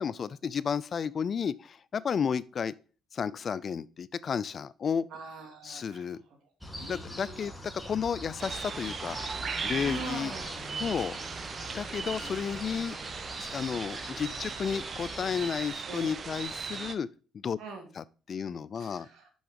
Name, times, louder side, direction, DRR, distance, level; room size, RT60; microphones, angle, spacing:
voice 1, 0.0-2.7 3.1-5.1 5.6-6.2 6.9-7.5 7.8-9.2 9.6-10.3 10.8-11.2 11.7-12.9 13.4-17.1 17.3-17.6 18.0-19.1, left 7 dB, 50° left, 0.4 m, -32 dB
voice 2, 5.1-6.2 6.7-7.5 9.8-10.5 15.9-16.2 17.6-17.9 18.7-19.4, right 4 dB, 70° right, 2.4 m, -43 dB
sound 1, 6.6-15.5, equal, ahead, 2.1 m, -43 dB
sound 2, 8.4-16.9, right 5 dB, 45° right, 0.8 m, -38 dB
6.3 x 5.6 x 5.2 m
supercardioid pair, 65°, 0 cm